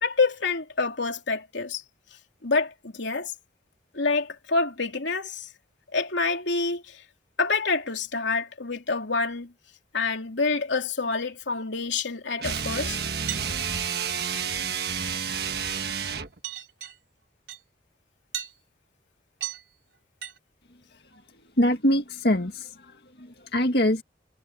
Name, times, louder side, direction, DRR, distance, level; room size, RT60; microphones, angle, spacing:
voice 1, 0.0-1.8 2.4-3.3 3.9-5.5 5.9-7.0 7.4-9.5 9.9-13.0, left 4 dB, 85° left, 3.0 m, -27 dB
sound 1, 12.4-16.4, right 7 dB, 60° right, 1.5 m, -30 dB
sound 2, 13.3-13.4 14.3-14.7 15.1-15.4 15.7-16.2 16.4-17.0 17.5-17.6 18.3-18.5 19.4-19.6 20.2-20.4, right 11 dB, 80° right, 5.6 m, -35 dB
voice 2, 21.6-24.0, left 1 dB, 60° left, 2.3 m, -24 dB
head